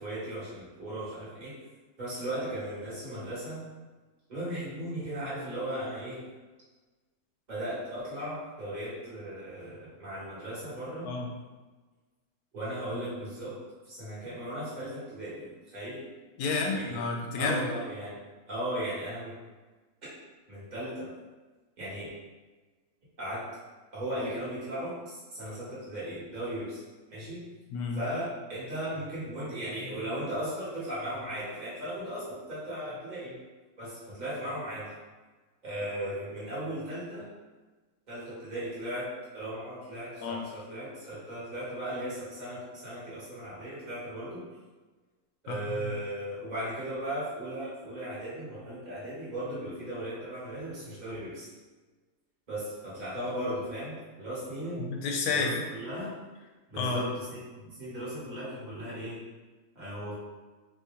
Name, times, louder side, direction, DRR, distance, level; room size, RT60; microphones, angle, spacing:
voice 1, 0.0-1.5 2.0-3.6 4.3-6.3 7.5-11.1 12.5-13.6 13.8-16.0 16.7-17.0 17.4-18.2 18.5-19.3 20.5-21.1 21.8-22.1 23.2-23.4 23.9-26.8 27.1-27.4 27.9-33.3 33.8-34.9 35.6-37.3 38.1-44.4 45.4-51.5 52.5-54.9 55.3-56.2 56.7-59.2 59.7-60.1, right 1 dB, 30° right, -9 dB, 1.3 m, -37 dB
voice 2, 16.4-17.7 27.7-28.0 40.2-40.4 45.5-45.9 54.8-55.6 56.8-57.0, left 4 dB, 85° left, 2 dB, 1.1 m, -30 dB
2.9 x 2.8 x 3.5 m, 1.3 s
omnidirectional pair, 1.5 m